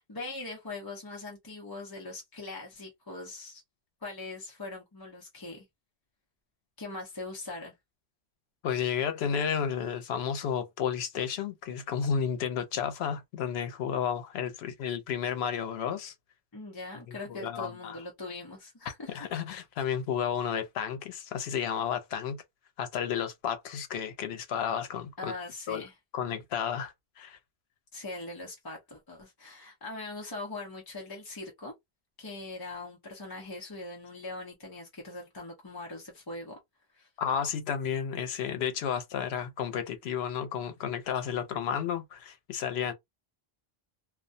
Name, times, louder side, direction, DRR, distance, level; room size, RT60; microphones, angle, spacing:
voice 1, 0.1-3.6 4.0-5.7 6.8-7.7 16.5-19.2 25.2-25.9 27.9-31.7 32.2-36.6 36.9-37.1, left 2 dB, 25° left, 0.6 m, -41 dB
voice 2, 8.6-16.1 17.1-18.0 19.1-22.4 22.8-25.3 25.7-25.8 26.1-27.4 37.2-42.9, left 8 dB, 90° left, 0.9 m, -32 dB
2.3 x 2.1 x 2.5 m
omnidirectional pair, 1.0 m